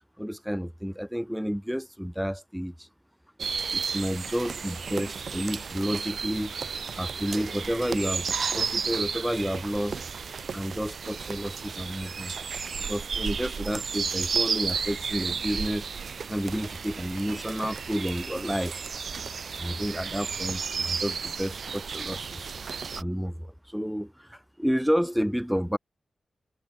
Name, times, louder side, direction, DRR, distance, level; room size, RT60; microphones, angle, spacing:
voice 1, 0.2-2.9 3.7-6.5 6.9-8.3 8.5-10.0 10.5-12.3 12.9-15.9 16.3-18.8 19.5-22.5 23.0-25.8, equal, ahead, 3.6 m, -30 dB
sound 1, 3.4-23.0, right 6 dB, 70° right, 2.6 m, -33 dB
cardioid pair, 65°, 0 cm